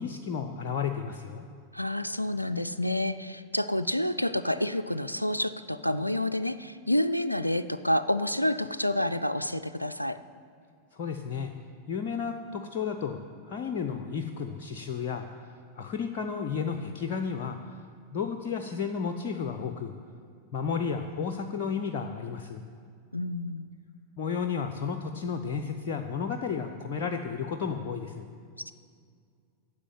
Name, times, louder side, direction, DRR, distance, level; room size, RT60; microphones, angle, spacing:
voice 1, 0.0-1.4 10.9-11.5 11.9-13.2 13.5-15.3 15.7-17.6 18.1-19.9 20.5-22.6 24.2-28.3, left 6 dB, 45° left, 6 dB, 0.7 m, -32 dB
voice 2, 1.7-10.2 23.1-23.7 28.7-28.8, left 1 dB, 90° left, 11 dB, 0.3 m, -29 dB
9.9 x 7.3 x 9.2 m, 2.2 s
figure-of-eight pair, 90°, 0 cm